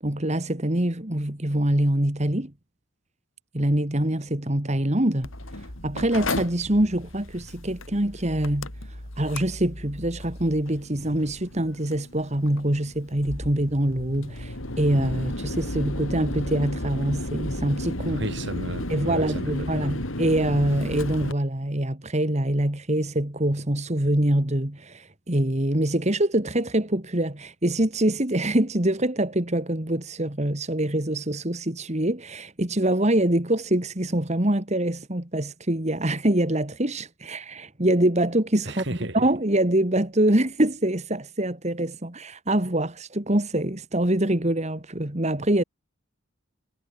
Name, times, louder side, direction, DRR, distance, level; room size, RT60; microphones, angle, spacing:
voice 1, 0.0-2.5 3.5-18.3 18.9-45.6, right 1 dB, 35° right, 2.2 m, -25 dB
Mechanical fan, 5.2-21.3, left 1 dB, 80° left, 5.1 m, -34 dB
voice 2, 18.1-20.0 38.7-39.2, right 1 dB, 60° right, 4.1 m, -34 dB
head